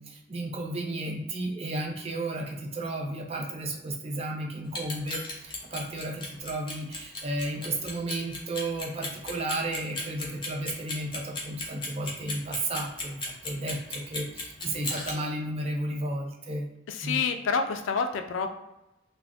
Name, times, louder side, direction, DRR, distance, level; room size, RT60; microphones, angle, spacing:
voice 1, 0.0-16.7 17.0-17.2, right 1 dB, 30° right, 0 dB, 0.5 m, -33 dB
Clock, 4.7-15.1, left 2 dB, 25° left, 0.6 m, -35 dB
voice 2, 16.9-18.5, left 5 dB, 85° left, 6 dB, 0.3 m, -28 dB
2.4 x 2.0 x 3.4 m, 0.95 s
head